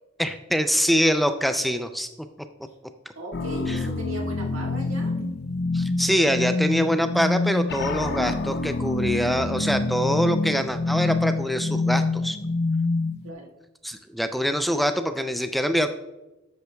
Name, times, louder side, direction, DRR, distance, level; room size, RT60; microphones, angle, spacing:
voice 1, 0.2-2.1 3.7-3.8 5.7-12.4 13.8-15.9, equal, ahead, 8 dB, 0.3 m, -24 dB
voice 2, 3.1-5.2 13.2-13.5, right 1 dB, 85° right, 1 dB, 1.6 m, -37 dB
sound 1, 3.3-13.3, left 2 dB, 55° left, 0.6 m, -26 dB
10.5 x 8.2 x 2.3 m, 0.99 s
head